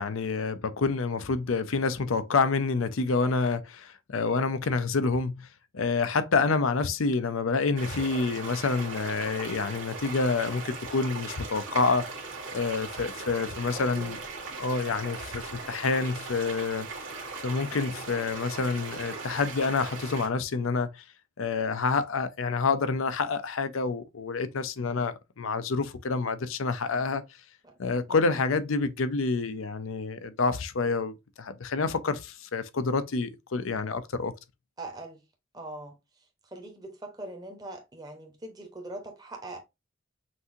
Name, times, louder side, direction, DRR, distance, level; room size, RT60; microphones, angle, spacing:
voice 1, 0.0-5.5 5.7-12.1 12.5-14.2 14.6-16.9 17.4-20.9 21.4-27.2 27.8-34.3, left 4 dB, 70° left, 0.5 m, -28 dB
sound 1, 7.8-20.3, right 4 dB, 65° right, 1.6 m, -39 dB
voice 2, 13.7-14.2 27.6-27.8 28.1-28.4 34.8-35.2 35.5-36.0 36.5-39.6, right 2 dB, 20° right, 1.0 m, -42 dB
5.9 x 2.7 x 2.7 m
head